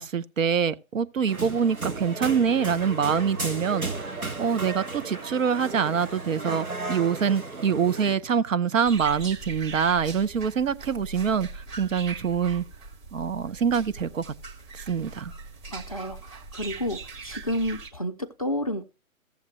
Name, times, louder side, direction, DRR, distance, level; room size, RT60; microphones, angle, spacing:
voice 1, 0.0-12.6 13.1-14.3 14.7-15.3, right 7 dB, 65° right, 0.7 m, -25 dB
sound 1, 1.3-8.2, right 3 dB, 85° right, 1.6 m, -34 dB
sound 2, 8.8-17.9, right 4 dB, 20° right, 1.3 m, -41 dB
voice 2, 15.7-18.8, equal, 30° left, 0.4 m, -31 dB
14.5 x 7.2 x 3.0 m
figure-of-eight pair, 135°, 42 cm